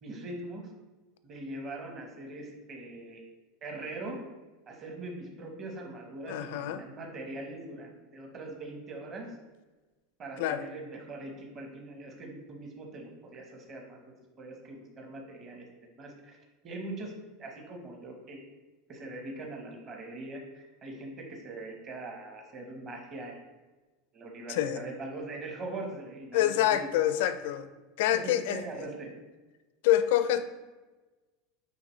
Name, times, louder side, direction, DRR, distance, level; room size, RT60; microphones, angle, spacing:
voice 1, 0.0-0.7 1.2-3.2 3.6-4.2 4.7-9.3 10.2-15.7 16.0-16.4 16.6-17.1 17.4-18.4 18.9-23.4 24.1-26.9 28.1-29.1, right 2 dB, 30° right, 1 dB, 1.1 m, -42 dB
voice 2, 6.3-6.9 10.4-10.6 24.5-24.8 26.3-27.7 28.0-28.6 29.8-30.5, left 12 dB, 65° left, 11 dB, 0.4 m, -26 dB
8.8 x 3.4 x 3.2 m, 1.2 s
supercardioid pair, 160°, 0 cm